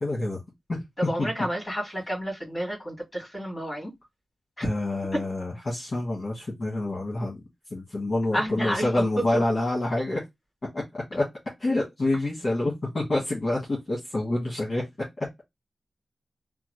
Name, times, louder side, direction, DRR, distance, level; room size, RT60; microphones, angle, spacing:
voice 1, 0.0-0.4 0.7-0.8 1.2-1.3 4.6-7.4 7.7-10.2 10.7-11.3 11.6-14.8 15.2-15.3, left 2 dB, 35° left, 1.3 m, -27 dB
voice 2, 1.0-3.9 4.6-4.7 5.1-5.2 8.3-9.4, equal, 15° left, 2.0 m, -30 dB
3.7 x 2.1 x 3.1 m
wide cardioid pair, 175°, 0 cm